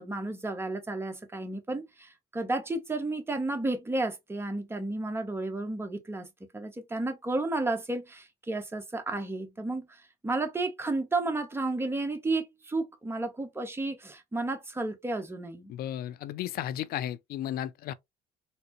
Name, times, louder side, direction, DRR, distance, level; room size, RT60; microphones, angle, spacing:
voice 1, 0.0-6.3 6.5-15.7, right 2 dB, 15° right, 0.8 m, -32 dB
voice 2, 15.7-17.9, left 11 dB, 65° left, 0.4 m, -34 dB
4.1 x 2.0 x 2.9 m
cardioid pair, 110°, 17 cm